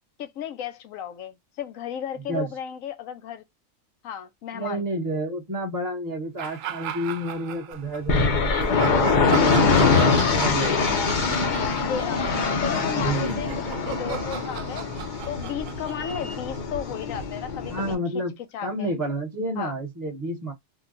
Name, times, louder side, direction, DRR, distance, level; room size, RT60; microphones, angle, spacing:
voice 1, 0.2-3.4 4.0-4.8 11.9-12.3 12.6-18.9 19.6-19.7, left 9 dB, 80° left, 1.1 m, -34 dB
voice 2, 4.5-11.1 12.9-13.4 17.7-18.3 18.6-20.5, right 1 dB, 20° right, 0.7 m, -30 dB
sound 1, 6.4-8.0 8.5-16.8, right 9 dB, 75° right, 0.9 m, -36 dB
sound 2, 8.1-17.9, left 4 dB, 45° left, 0.6 m, -23 dB
3.7 x 2.2 x 2.4 m
omnidirectional pair, 1.4 m